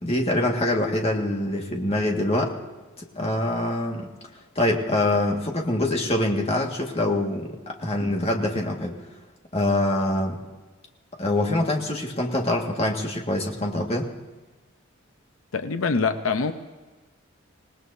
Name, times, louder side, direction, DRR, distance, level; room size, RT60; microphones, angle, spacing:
voice 1, 0.0-2.6 3.1-4.1 4.5-8.9 9.5-10.4 11.1-14.1, left 1 dB, 30° left, 1 dB, 1.7 m, -24 dB
voice 2, 15.5-16.5, left 4 dB, 80° left, 8 dB, 0.7 m, -24 dB
26.0 x 18.5 x 2.7 m, 1.3 s
head